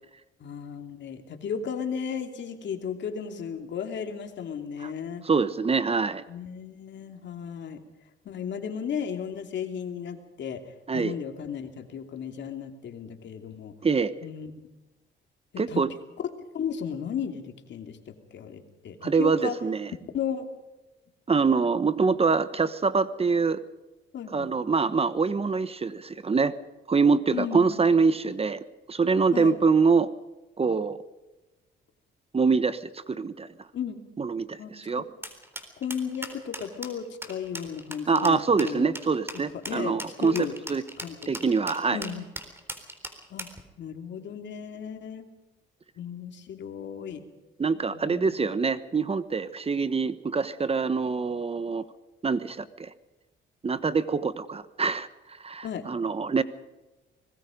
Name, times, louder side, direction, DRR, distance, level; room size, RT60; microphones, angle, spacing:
voice 1, 0.4-5.2 6.3-7.8 8.2-13.7 14.2-14.6 15.5-15.8 16.2-19.5 20.1-20.5 22.0-22.2 24.1-24.5 27.3-27.8 29.3-29.6 33.7-34.0 34.6-35.1 35.8-38.9 39.7-40.5 41.0-41.3 41.9-42.2 43.3-43.5 43.8-45.3 46.0-47.2 47.9-48.5 55.6-55.9, left 7 dB, 65° left, 6 dB, 2.9 m, -35 dB
voice 2, 5.2-6.2 10.9-11.1 13.8-14.1 15.6-15.9 19.0-19.9 21.3-23.6 24.3-26.5 26.9-28.6 28.9-30.1 30.6-31.0 32.3-33.5 34.2-35.0 38.1-40.3 40.7-40.8 41.3-42.0 47.6-51.8 52.2-52.9 53.6-55.1 55.4-56.4, right 4 dB, 30° right, 14 dB, 1.1 m, -24 dB
sound 1, 35.2-43.6, right 1 dB, 10° right, 3.8 m, -38 dB
24.5 x 20.5 x 5.2 m, 1.1 s
cardioid pair, 90°, 20 cm